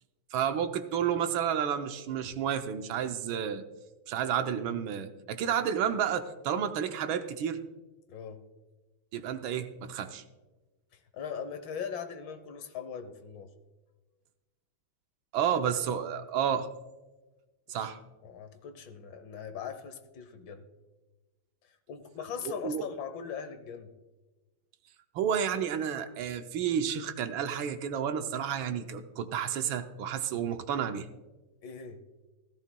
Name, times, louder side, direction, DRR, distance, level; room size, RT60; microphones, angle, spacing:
voice 1, 0.3-3.6 4.1-7.6 9.1-10.2 15.3-16.7 17.7-18.0 22.6-22.9 25.1-31.1, right 8 dB, 75° right, 8 dB, 1.5 m, -31 dB
voice 2, 8.1-8.4 11.1-13.5 17.8-17.9 18.2-20.6 21.9-23.9 31.6-32.0, left 7 dB, 65° left, 9 dB, 1.5 m, -40 dB
15.5 x 14.0 x 2.2 m, 1.2 s
omnidirectional pair, 2.3 m